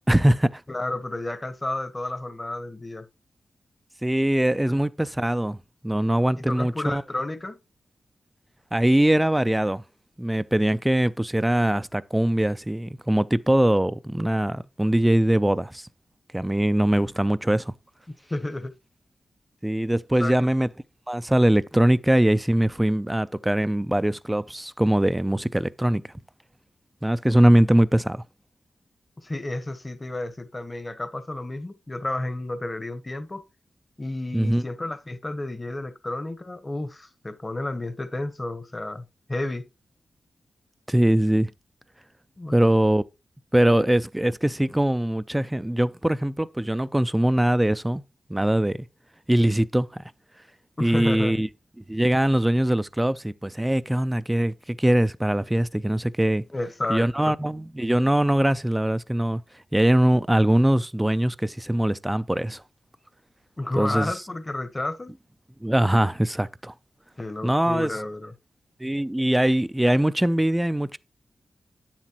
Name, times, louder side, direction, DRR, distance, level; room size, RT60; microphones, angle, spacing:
voice 1, 0.1-0.6 4.0-5.6 5.8-7.0 8.7-9.8 10.2-15.9 16.3-17.7 19.6-20.7 21.1-26.0 27.0-28.2 34.3-34.6 40.9-41.5 42.5-43.0 43.5-48.0 48.3-48.8 49.3-50.0 50.8-51.5 51.9-56.4 56.9-59.4 59.7-62.6 63.8-64.1 65.6-66.7 67.4-68.0 68.8-71.0, right 1 dB, 10° right, 0.4 m, -22 dB
voice 2, 0.7-3.1 6.4-7.6 18.3-18.7 20.2-20.4 29.2-33.4 34.0-39.7 42.4-42.5 50.8-51.3 56.5-57.3 63.6-65.1 67.2-68.3, left 2 dB, 30° left, 1.1 m, -31 dB
9.0 x 7.4 x 2.9 m
cardioid pair, 45°, 0 cm